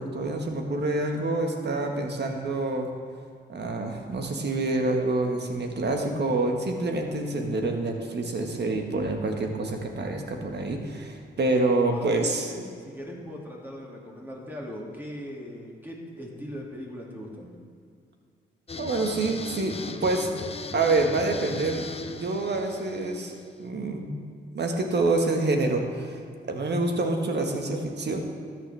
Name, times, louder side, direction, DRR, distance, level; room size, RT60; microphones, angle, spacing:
voice 1, 0.0-2.9 3.5-12.5 18.8-20.3 20.7-24.1 24.5-26.2 26.5-28.3, right 2 dB, 55° right, 3 dB, 1.6 m, -27 dB
voice 2, 11.9-17.5, equal, 10° right, -3 dB, 2.5 m, -40 dB
sound 1, 18.7-23.6, left 4 dB, 30° left, 0.7 m, -38 dB
13.5 x 9.2 x 3.5 m, 2.2 s
supercardioid pair, 50°, 21 cm